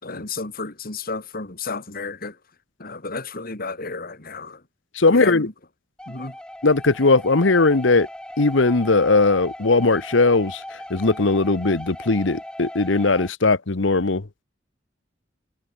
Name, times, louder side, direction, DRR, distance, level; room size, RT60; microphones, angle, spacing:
voice 1, 0.0-2.4 2.8-4.6 5.1-5.5 6.1-6.4, left 3 dB, 50° left, 2.8 m, -32 dB
voice 2, 4.9-5.5 6.6-8.1 8.4-14.3, left 3 dB, 70° left, 1.1 m, -19 dB
sound 1, 6.0-13.3, left 1 dB, 5° left, 5.6 m, -38 dB
head